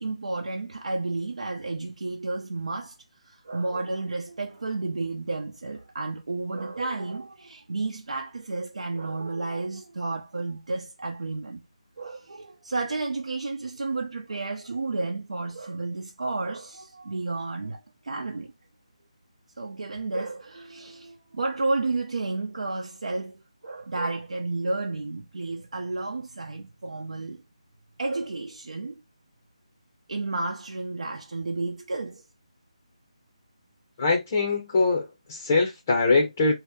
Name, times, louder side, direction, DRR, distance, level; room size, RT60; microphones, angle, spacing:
voice 1, 0.0-2.9 3.2-11.6 12.0-18.5 19.6-27.4 28.0-29.0 30.1-32.2, right 3 dB, 70° right, 0.7 m, -32 dB
voice 2, 34.0-36.5, left 3 dB, 15° left, 0.6 m, -23 dB
4.2 x 2.8 x 3.4 m
hypercardioid pair, 175°, 4 cm